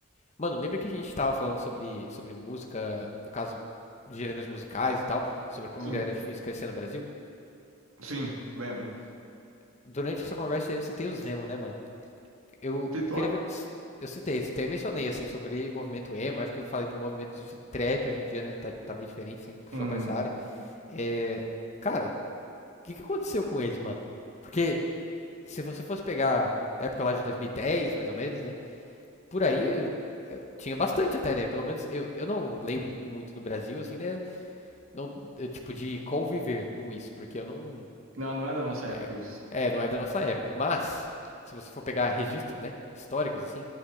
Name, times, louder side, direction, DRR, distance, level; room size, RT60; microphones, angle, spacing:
voice 1, 0.4-3.1 3.3-3.6 4.1-7.0 9.9-11.8 12.6-12.9 13.2-13.6 14.0-19.6 19.9-20.3 20.9-21.4 21.8-22.1 22.8-24.0 24.4-24.8 25.4-26.5 26.8-28.5 29.3-30.0 30.3-34.2 34.9-37.9 38.9-39.1 39.5-41.1 41.5-43.6, left 2 dB, 30° left, 1 dB, 0.8 m, -32 dB
voice 2, 8.0-8.9 12.9-13.3 19.7-20.1 38.1-39.4, right 1 dB, 75° right, -1 dB, 1.7 m, -33 dB
11.0 x 8.7 x 4.9 m, 2.6 s
head